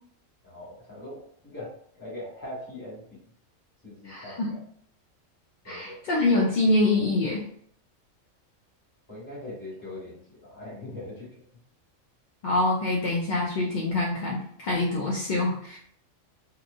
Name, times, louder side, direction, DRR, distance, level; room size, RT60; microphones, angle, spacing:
voice 1, 0.4-1.7 1.9-3.0 3.8-4.6 5.6-6.0 9.1-11.3, left 1 dB, 15° left, -7 dB, 1.4 m, -41 dB
voice 2, 4.0-4.6 5.6-7.4 12.4-15.8, left 2 dB, 60° left, -3 dB, 0.4 m, -25 dB
2.8 x 2.2 x 2.5 m, 0.63 s
omnidirectional pair, 1.4 m